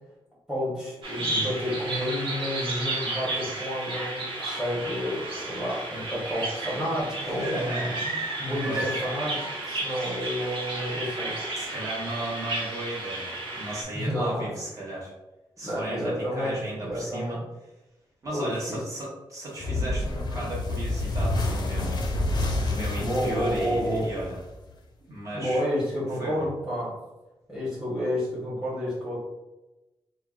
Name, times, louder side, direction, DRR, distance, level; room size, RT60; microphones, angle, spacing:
voice 1, 0.5-7.9 8.4-11.3 13.9-14.5 15.6-17.4 18.3-18.6 23.0-24.1 25.3-26.9 27.5-29.2, equal, 5° right, -9 dB, 1.0 m, -30 dB
Bird vocalization bird call bird song, 1.0-13.8, right 2 dB, 65° right, 0.7 m, -33 dB
voice 2, 7.2-8.3 8.6-9.0 11.5-13.3 13.5-15.1 15.6-17.4 18.2-24.4 25.0-25.6 26.2-26.5, right 1 dB, 35° right, -5 dB, 1.2 m, -35 dB
sound 1, 19.6-24.7, left 2 dB, 45° left, 0.5 m, -28 dB
4.3 x 2.1 x 2.4 m, 1.0 s
wide cardioid pair, 135°, 9 cm